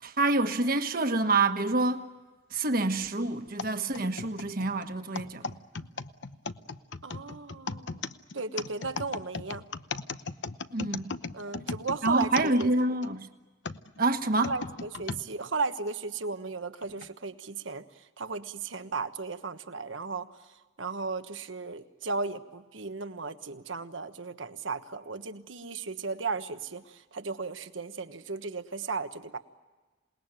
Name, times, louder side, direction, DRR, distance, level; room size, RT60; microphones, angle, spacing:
voice 1, 0.0-2.0 2.5-5.6 10.7-11.2 12.0-13.3 14.0-14.5, right 2 dB, 50° right, 1.4 m, -27 dB
sound 1, 3.6-13.1 13.6-15.2 15.9-16.0 16.8-17.1, left 4 dB, 65° left, 0.9 m, -37 dB
voice 2, 7.0-8.0 8.3-9.6 11.3-12.7 14.5-29.4, right 4 dB, 85° right, 1.3 m, -35 dB
27.5 x 20.0 x 9.1 m
head